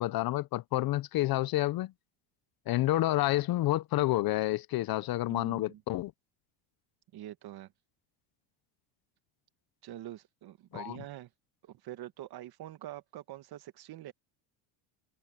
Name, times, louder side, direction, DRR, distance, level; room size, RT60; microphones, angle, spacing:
voice 1, 0.0-1.9 2.7-6.1 10.7-11.0, left 16 dB, 45° left, 0.7 m, -29 dB
voice 2, 5.3-5.8 7.1-7.7 9.8-11.3 11.6-14.1, right 13 dB, 50° right, 1.5 m, -45 dB
cardioid pair, 120°, 49 cm